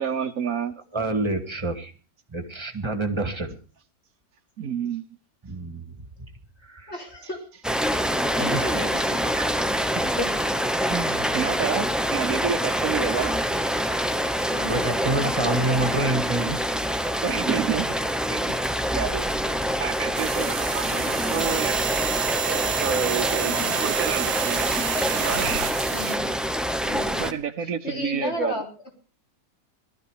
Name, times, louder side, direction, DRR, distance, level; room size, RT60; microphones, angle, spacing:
voice 1, 0.0-0.8 4.6-5.0 8.4-8.5 9.4-9.5 11.3-13.3 16.7-16.8 17.2-17.9 18.3-19.3 19.8-21.9 22.4-24.7 25.2-25.7 26.9-28.5, right 7 dB, 65° right, 1.3 m, -29 dB
voice 2, 0.9-1.9 2.3-3.6 5.4-5.9 6.7-6.9 8.5-8.7 10.2-10.4 10.6-11.7 14.6-16.6, right 2 dB, 20° right, 1.9 m, -28 dB
voice 3, 6.9-7.4 8.4-9.3 13.1-13.4 14.5-14.8 15.2-16.0 20.9-21.1 23.5-23.9 25.9-26.3 26.8-28.7, left 2 dB, 45° left, 3.7 m, -34 dB
Rain, 7.6-27.3, equal, ahead, 0.5 m, -26 dB
sound 1, 20.1-26.2, right 9 dB, 80° right, 1.4 m, -29 dB
sound 2, 25.3-26.1 26.9-27.1, left 5 dB, 60° left, 1.5 m, -42 dB
18.5 x 13.0 x 4.9 m
omnidirectional pair, 1.6 m